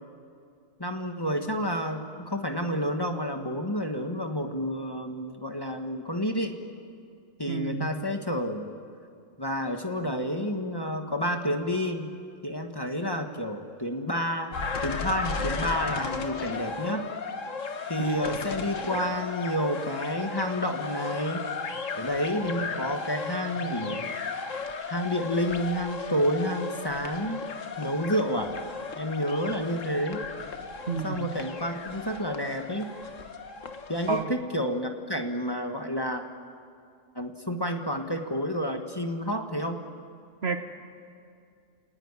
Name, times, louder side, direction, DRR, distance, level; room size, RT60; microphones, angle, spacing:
voice 1, 0.8-6.6 7.4-8.7 9.4-12.1 12.4-14.5 14.8-17.1 17.9-21.4 21.9-24.0 24.8-27.4 27.8-28.5 28.9-30.3 31.0-32.9 33.9-36.2 37.1-39.8, equal, 20° left, 4 dB, 1.5 m, -30 dB
voice 2, 7.5-7.9 18.1-18.2 30.9-31.3 34.1-34.3 40.4-40.6, right 5 dB, 55° right, 8 dB, 1.5 m, -30 dB
sound 1, 14.5-34.2, left 4 dB, 85° left, 1.7 m, -35 dB
29.5 x 18.5 x 9.7 m, 2.3 s
omnidirectional pair, 1.3 m